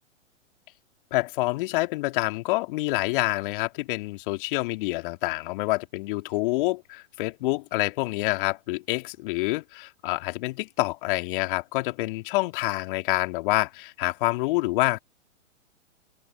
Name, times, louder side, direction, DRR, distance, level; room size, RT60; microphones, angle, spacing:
voice 1, 1.1-15.0, left 22 dB, 45° left, 2.7 m, -27 dB
open air
hypercardioid pair, 115°, 37 cm